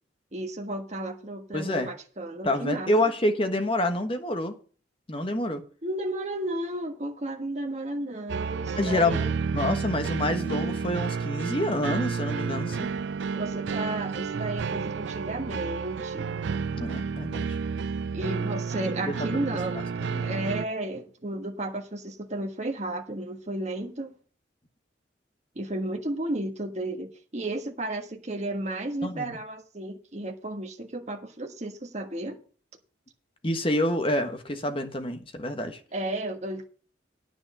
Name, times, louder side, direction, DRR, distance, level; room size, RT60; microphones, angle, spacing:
voice 1, 0.3-2.9 5.8-9.3 13.3-16.3 18.1-19.9 20.2-24.1 25.5-32.4 35.9-36.6, right 1 dB, 35° right, 1.4 m, -33 dB
voice 2, 1.5-1.9 2.4-4.5 5.1-5.6 8.7-9.2 9.5-12.9 16.7-17.6 19.3-19.6 20.0-20.3 29.0-29.4 33.4-35.8, left 1 dB, 30° left, 1.3 m, -27 dB
sound 1, 8.3-20.7, right 5 dB, 70° right, 0.4 m, -31 dB
9.8 x 6.2 x 6.8 m
head